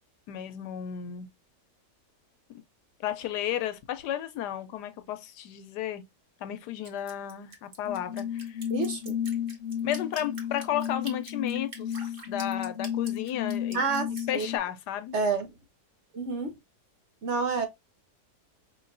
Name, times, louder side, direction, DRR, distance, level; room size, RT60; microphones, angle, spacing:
voice 1, 0.3-1.3 2.5-2.6 3.0-6.0 6.4-8.6 9.8-13.8 14.3-15.2, left 11 dB, 80° left, 1.2 m, -33 dB
Drip, 6.8-14.5, right 2 dB, 35° right, 1.4 m, -46 dB
sound 1, 7.9-14.6, left 9 dB, 50° left, 1.1 m, -33 dB
voice 2, 8.7-9.1 13.7-14.5 15.1-15.5 16.1-16.5 17.2-17.7, right 4 dB, 55° right, 0.8 m, -28 dB
5.1 x 3.0 x 2.6 m
omnidirectional pair, 1.8 m